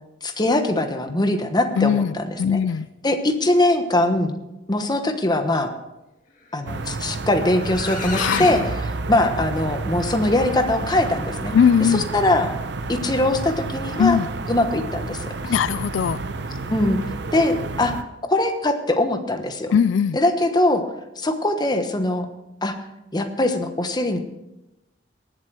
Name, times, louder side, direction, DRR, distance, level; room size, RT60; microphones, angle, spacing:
voice 1, 0.2-2.6 3.0-4.4 4.7-5.7 6.5-8.6 9.1-11.5 11.9-12.5 12.9-14.2 14.5-15.3 16.6-17.0 17.3-17.9 18.3-19.7 20.1-20.8 21.2-22.3 22.6-22.7 23.1-24.2, left 1 dB, 25° left, 7 dB, 1.1 m, -21 dB
voice 2, 1.8-2.9 8.1-8.5 11.5-12.1 14.0-14.3 15.4-16.2 19.7-20.2, left 7 dB, 80° left, 17 dB, 0.3 m, -20 dB
sound 1, 6.7-18.0, right 3 dB, 65° right, 0.8 m, -30 dB
sound 2, 7.6-8.7, left 3 dB, 45° left, 2.0 m, -29 dB
19.0 x 7.7 x 4.7 m, 0.94 s
head